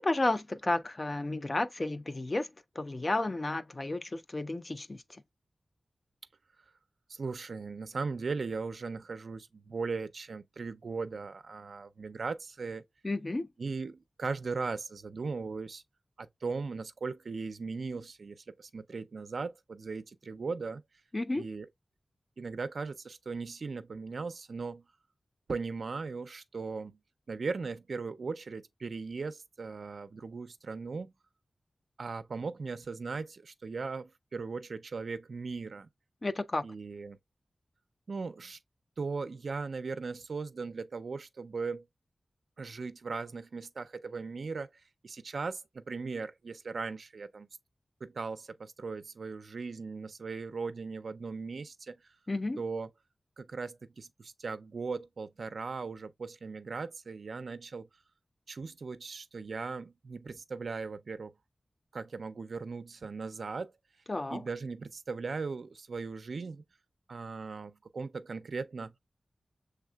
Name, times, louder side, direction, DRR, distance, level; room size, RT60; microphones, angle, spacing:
voice 1, 0.0-2.5 2.8-5.2 13.0-13.5 21.1-21.4 36.2-36.6 52.3-52.6 64.1-64.4, left 2 dB, 40° left, 0.4 m, -32 dB
voice 2, 7.1-12.8 13.6-15.8 16.2-20.8 21.3-21.7 22.4-24.8 25.5-27.0 27.3-31.1 32.0-35.9 36.6-37.2 38.1-38.6 39.0-41.8 42.6-44.7 45.0-47.5 48.0-52.0 52.6-52.9 53.4-57.9 58.5-61.3 61.9-63.7 64.3-66.6 67.1-69.0, right 4 dB, 75° right, 0.4 m, -38 dB
6.4 x 3.3 x 2.2 m
wide cardioid pair, 65°, 0 cm